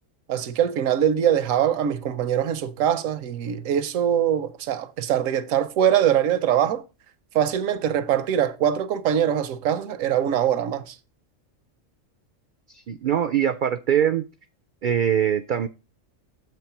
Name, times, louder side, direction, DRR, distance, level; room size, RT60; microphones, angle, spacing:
voice 1, 0.3-6.8 7.3-11.0, right 9 dB, 90° right, 1.1 m, -23 dB
voice 2, 12.7-14.3 14.8-15.7, right 9 dB, 70° right, 0.4 m, -22 dB
7.7 x 4.7 x 5.7 m
omnidirectional pair, 1.3 m